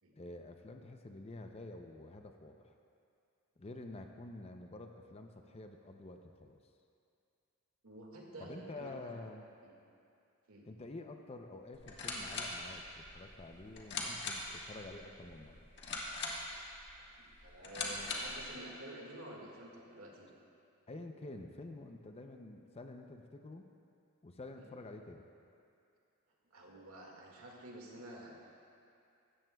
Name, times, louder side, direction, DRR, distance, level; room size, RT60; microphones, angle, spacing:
voice 1, 0.2-2.7 3.6-6.6 8.4-9.5 10.6-15.6 20.9-23.7 24.2-25.3, left 2 dB, 25° left, 5 dB, 0.5 m, -49 dB
voice 2, 7.8-9.2 9.6-9.7 10.5-10.6 17.2-20.3 24.6-24.7 26.5-28.3, right 1 dB, 70° right, -2 dB, 1.9 m, -50 dB
sound 1, 11.7-18.5, left 3 dB, 50° left, 1.5 m, -42 dB
16.5 x 13.5 x 2.3 m, 2.5 s
head